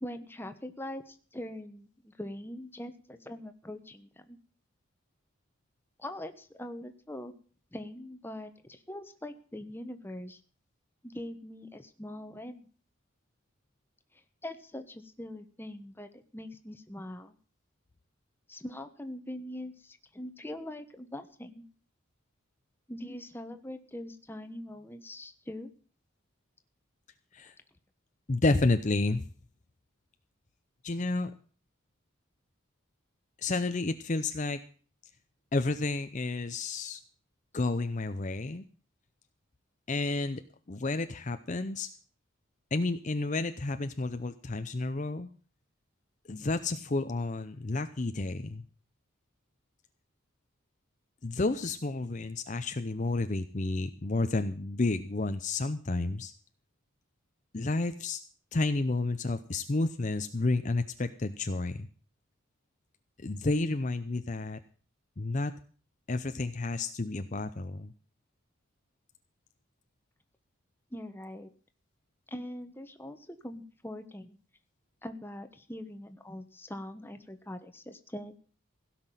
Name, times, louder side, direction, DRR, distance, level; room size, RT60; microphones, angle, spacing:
voice 1, 0.0-4.4 6.0-7.3 7.7-10.4 11.0-12.7 14.4-17.3 18.5-21.6 22.9-25.7 70.9-71.5 72.3-74.4 75.0-78.3, left 1 dB, 10° left, 8 dB, 1.1 m, -42 dB
voice 2, 28.3-29.3 30.8-31.3 33.4-34.6 35.5-37.0 37.5-38.6 39.9-40.4 40.7-41.9 42.7-45.3 46.3-48.6 51.2-56.3 57.5-58.2 58.5-61.9 63.2-64.6 65.2-65.5 66.1-67.9, left 2 dB, 35° left, 9 dB, 0.7 m, -31 dB
16.5 x 6.0 x 9.0 m, 0.42 s
head